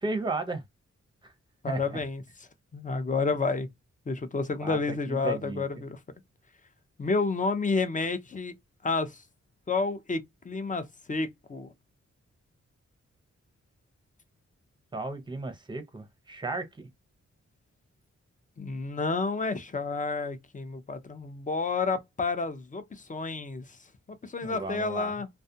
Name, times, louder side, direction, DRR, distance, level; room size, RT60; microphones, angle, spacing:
voice 1, 0.0-0.6 1.2-1.3 1.7-2.0 4.6-5.8 14.9-16.9 24.4-25.1, right 3 dB, 15° right, 0.7 m, -34 dB
voice 2, 1.6-2.2 2.7-3.7 4.1-6.0 7.0-8.5 8.8-9.2 9.7-11.7 18.6-23.6 24.2-25.3, left 4 dB, 25° left, 0.5 m, -30 dB
2.3 x 2.1 x 2.7 m
cardioid pair, 70°, 29 cm